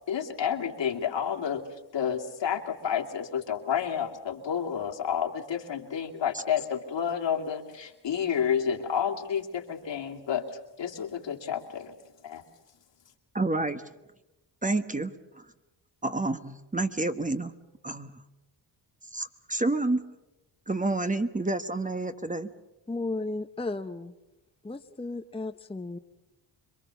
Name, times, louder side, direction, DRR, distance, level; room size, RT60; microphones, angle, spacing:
voice 1, 0.1-11.9 12.2-12.4, left 8 dB, 70° left, 1 dB, 2.7 m, -30 dB
voice 2, 13.3-13.8 14.6-15.5 16.0-17.5 17.8-18.2 19.1-20.0 20.7-22.5, right 2 dB, 15° right, 9 dB, 1.2 m, -29 dB
voice 3, 22.9-24.1 24.6-26.0, left 2 dB, 10° left, 7 dB, 0.9 m, -34 dB
26.5 x 22.5 x 7.0 m, 0.99 s
cardioid pair, 75°, 45 cm